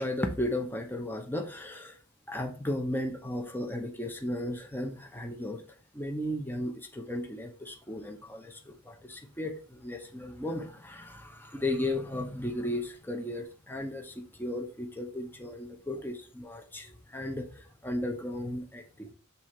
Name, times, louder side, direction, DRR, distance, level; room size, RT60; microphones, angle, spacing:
voice 1, 0.0-2.0 2.3-5.6 5.9-19.1, left 1 dB, 10° left, 4 dB, 0.9 m, -35 dB
7.1 x 3.8 x 4.4 m, 0.37 s
head